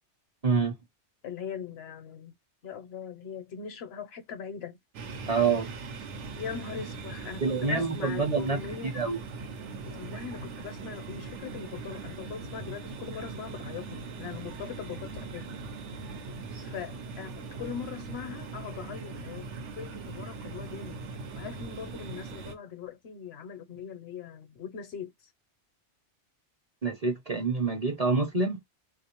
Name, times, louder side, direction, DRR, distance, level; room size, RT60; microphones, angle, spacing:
voice 1, 0.4-0.7 5.3-5.7 7.4-8.6 8.8-9.2 26.8-28.6, right 4 dB, 40° right, 0.7 m, -27 dB
voice 2, 1.2-2.4 2.6-4.8 6.4-9.0 9.8-15.5 16.6-25.3, left 7 dB, 65° left, 0.9 m, -41 dB
sound 1, 4.9-22.5, right 4 dB, 80° right, 1.0 m, -40 dB
3.4 x 2.5 x 2.9 m
omnidirectional pair, 1.2 m